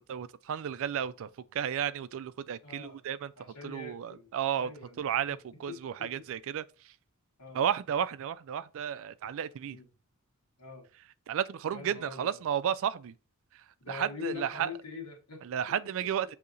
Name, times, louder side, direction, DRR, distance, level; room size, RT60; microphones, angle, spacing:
voice 1, 0.1-4.7 5.0-6.6 7.5-9.8 11.3-13.1 13.9-14.7 15.5-16.4, right 9 dB, 65° right, 0.3 m, -33 dB
voice 2, 2.6-3.0 3.4-5.4 5.7-6.3 7.4-7.6 9.7-9.9 10.6-10.9 11.7-12.4 13.8-15.8 16.0-16.3, left 6 dB, 90° left, 1.3 m, -44 dB
6.8 x 2.8 x 2.5 m
head